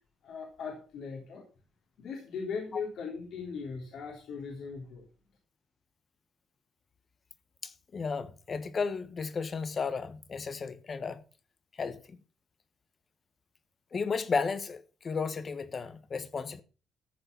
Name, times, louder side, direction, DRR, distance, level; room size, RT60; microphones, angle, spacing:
voice 1, 0.2-1.4 2.0-5.0, left 5 dB, 70° left, 3.6 m, -39 dB
voice 2, 7.6-11.2 11.7-12.2 13.9-16.6, left 5 dB, 40° left, 1.2 m, -34 dB
14.0 x 6.8 x 5.4 m
cardioid pair, 90°, 0 cm